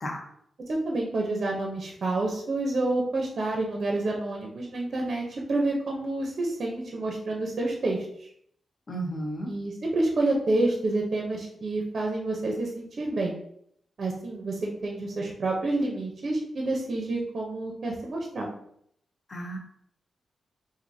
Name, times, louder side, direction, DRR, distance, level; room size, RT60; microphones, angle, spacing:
voice 1, 0.7-8.3 9.5-13.3 14.0-18.5, right 2 dB, 45° right, 0 dB, 0.6 m, -28 dB
voice 2, 8.9-9.5 19.3-19.6, right 1 dB, 35° left, 1 dB, 0.7 m, -33 dB
4.7 x 2.5 x 2.6 m, 0.69 s
wide cardioid pair, 160°, 0 cm